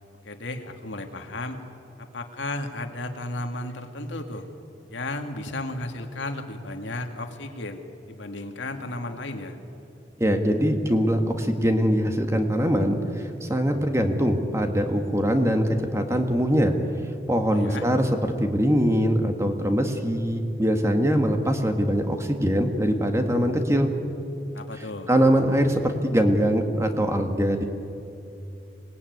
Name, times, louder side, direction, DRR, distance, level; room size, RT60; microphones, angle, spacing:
voice 1, 0.2-1.6 2.0-4.5 4.9-7.8 8.1-9.6 17.5-17.9 24.5-25.1, left 2 dB, 90° left, 5 dB, 2.3 m, -34 dB
voice 2, 10.2-16.7 17.3-18.1 18.4-23.9 25.1-27.6, equal, 15° right, 5 dB, 1.8 m, -22 dB
26.0 x 19.5 x 9.6 m, 2.7 s
head